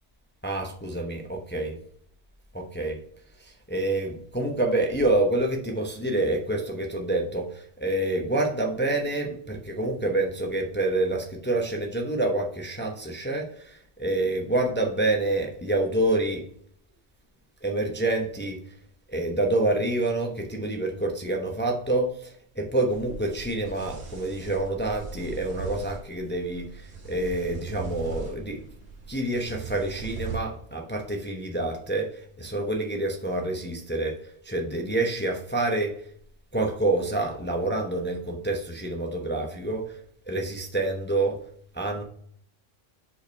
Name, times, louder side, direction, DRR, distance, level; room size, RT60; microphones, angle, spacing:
voice 1, 0.4-1.8 2.5-3.0 3.4-16.4 17.6-18.6 19.1-28.6 29.1-35.9 36.5-40.0 40.3-41.4 41.7-42.0, right 2 dB, 10° left, 1 dB, 0.7 m, -27 dB
sound 1, 22.9-30.4, right 5 dB, 80° right, 1.6 m, -39 dB
5.0 x 5.0 x 4.5 m, 0.62 s
omnidirectional pair, 1.3 m